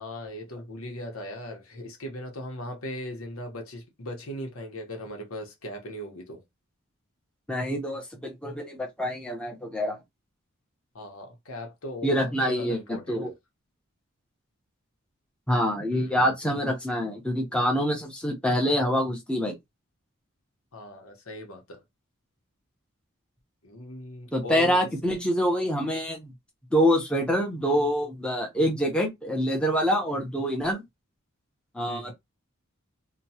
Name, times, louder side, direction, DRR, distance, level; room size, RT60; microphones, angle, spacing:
voice 1, 0.0-6.4 10.9-12.2 12.5-13.2 15.9-16.5 20.7-21.8 23.6-24.9 31.9-32.1, left 1 dB, 80° left, 1.0 m, -39 dB
voice 2, 7.5-10.0 12.0-13.3 15.5-19.6 24.3-26.3 26.7-30.8 31.7-32.1, equal, 5° left, 0.8 m, -26 dB
2.9 x 2.3 x 2.8 m
head